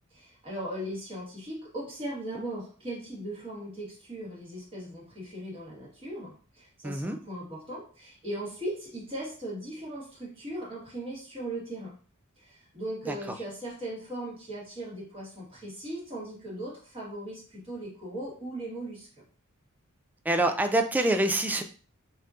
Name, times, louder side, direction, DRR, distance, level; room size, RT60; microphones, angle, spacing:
voice 1, 0.1-11.9 12.4-19.1, right 1 dB, 25° right, -5 dB, 1.5 m, -38 dB
voice 2, 6.8-7.2 13.1-13.2 20.3-21.6, right 1 dB, 10° right, 6 dB, 0.3 m, -25 dB
5.5 x 2.7 x 2.5 m, 0.38 s
head